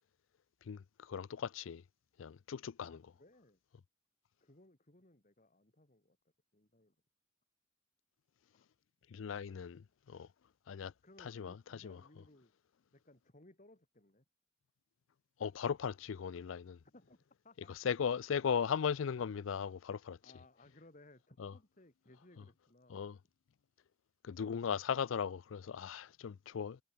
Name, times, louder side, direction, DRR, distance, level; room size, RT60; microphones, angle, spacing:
voice 1, 1.1-1.8 2.2-3.0 9.1-10.3 10.7-10.9 11.2-12.0 15.4-16.8 17.8-20.2 21.4-21.5 22.9-23.2 24.2-26.8, left 7 dB, 90° left, 0.4 m, -37 dB
voice 2, 2.8-3.6 4.4-6.2 6.5-7.0 9.5-9.7 11.0-12.5 12.9-14.2 16.9-17.7 20.2-23.1, left 1 dB, 40° left, 3.5 m, -62 dB
head